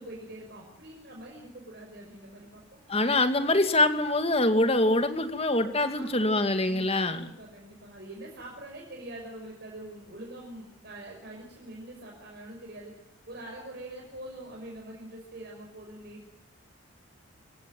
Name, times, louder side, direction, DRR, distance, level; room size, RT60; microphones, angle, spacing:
voice 1, 0.0-2.8 5.9-12.9 13.3-16.3, right 1 dB, 50° right, 0 dB, 5.7 m, -44 dB
voice 2, 2.9-7.3, left 2 dB, 30° left, 8 dB, 2.5 m, -24 dB
26.5 x 16.5 x 9.1 m, 0.83 s
head